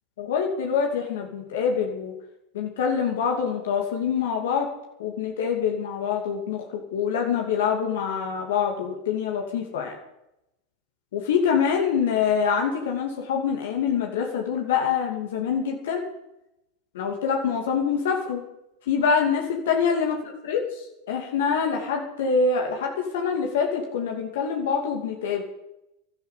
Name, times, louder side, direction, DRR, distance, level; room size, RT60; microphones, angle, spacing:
voice 1, 0.2-2.1 2.5-4.7 5.0-10.0 11.1-16.0 16.9-18.4 18.9-20.2 20.5-25.4, left 6 dB, 75° left, 1 dB, 2.6 m, -25 dB
12.5 x 12.0 x 8.4 m, 0.86 s
hypercardioid pair, 100°, 0 cm